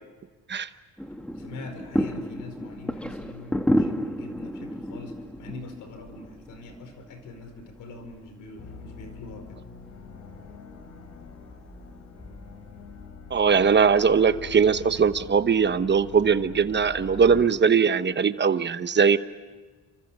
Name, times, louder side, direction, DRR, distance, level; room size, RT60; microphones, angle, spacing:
sound 1, 1.0-13.1, equal, 5° left, 1.7 m, -33 dB
voice 1, 1.3-9.6, left 3 dB, 85° left, 7 dB, 5.1 m, -43 dB
sound 2, 8.6-17.4, left 5 dB, 65° left, 3.7 m, -44 dB
voice 2, 13.3-19.2, right 6 dB, 35° right, 12 dB, 1.0 m, -20 dB
30.0 x 24.5 x 7.4 m, 1.3 s
cardioid pair, 90°, 30 cm